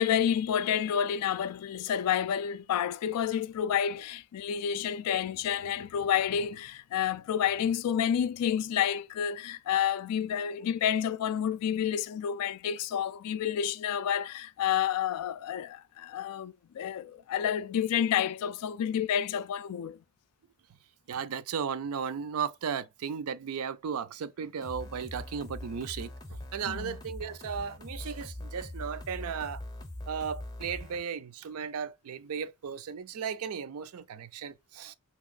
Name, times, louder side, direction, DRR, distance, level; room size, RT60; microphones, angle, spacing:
voice 1, 0.0-20.0 26.7-27.0, left 9 dB, 85° left, 0.3 m, -29 dB
voice 2, 21.1-29.6 30.1-34.9, right 7 dB, 75° right, 0.4 m, -35 dB
sound 1, 24.6-31.0, left 1 dB, 20° left, 0.5 m, -42 dB
3.2 x 2.9 x 2.4 m
head